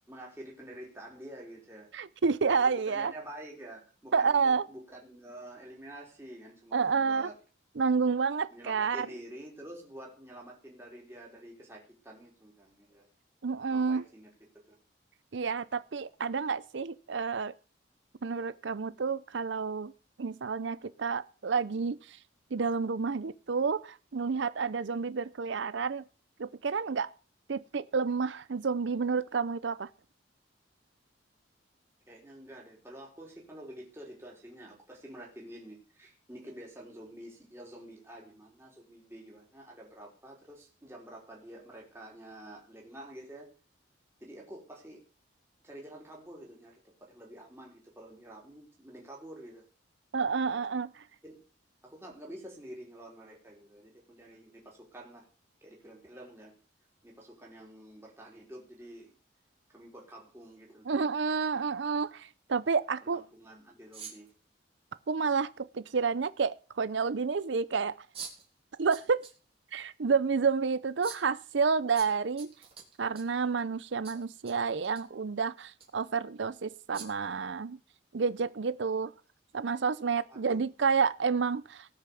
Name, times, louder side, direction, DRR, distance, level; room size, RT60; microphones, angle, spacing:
voice 1, 0.1-1.9 2.6-7.3 8.5-13.1 13.7-14.3 14.5-14.8 32.1-43.5 44.2-45.0 45.6-49.6 50.4-50.7 51.2-51.4 51.8-55.3 55.6-56.5 57.0-59.1 59.7-61.2 63.1-64.3 80.3-80.6, right 1 dB, 15° right, -2 dB, 3.7 m, -48 dB
voice 2, 1.9-3.1 4.1-4.7 6.7-7.3 7.8-9.1 13.4-14.0 15.3-17.5 18.2-19.9 20.2-22.2 22.5-26.0 26.4-27.1 27.5-29.9 50.1-51.0 60.9-63.2 65.1-67.9 68.8-69.2 69.7-72.5 73.0-77.8 78.1-79.1 79.5-81.9, right 5 dB, 70° right, 15 dB, 0.6 m, -29 dB
sound 1, 63.9-64.3 65.8-65.9 68.1-68.5 68.9-69.4 69.7-69.8 71.0-71.3 72.0-73.4 74.0-74.5 74.8-75.0 75.7-75.9 76.9-77.3, right 7 dB, 30° right, 3.6 m, -45 dB
18.5 x 6.7 x 7.0 m, 0.37 s
head